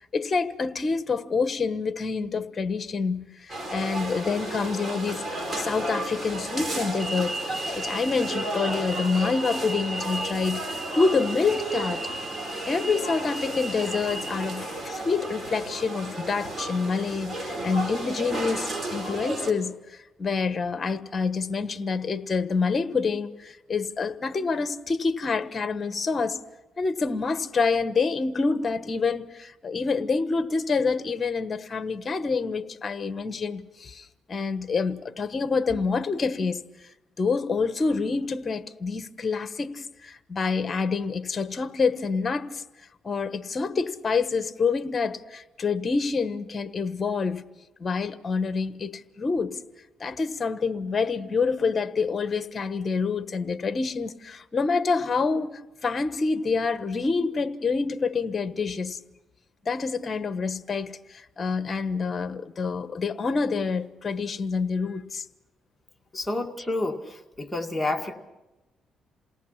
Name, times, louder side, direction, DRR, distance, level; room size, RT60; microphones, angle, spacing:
voice 1, 0.1-7.4 7.7-10.6 10.9-12.1 12.6-26.4 26.8-36.9 37.2-42.6 43.0-47.4 47.8-49.6 50.0-55.5 55.8-59.0 59.6-65.2, left 4 dB, 35° left, 1.2 m, -27 dB
sound 1, 3.5-19.5, right 1 dB, 30° right, 4.9 m, -32 dB
voice 2, 66.1-68.1, left 2 dB, 5° left, 2.2 m, -29 dB
28.5 x 18.5 x 5.8 m
cardioid pair, 90°, 0 cm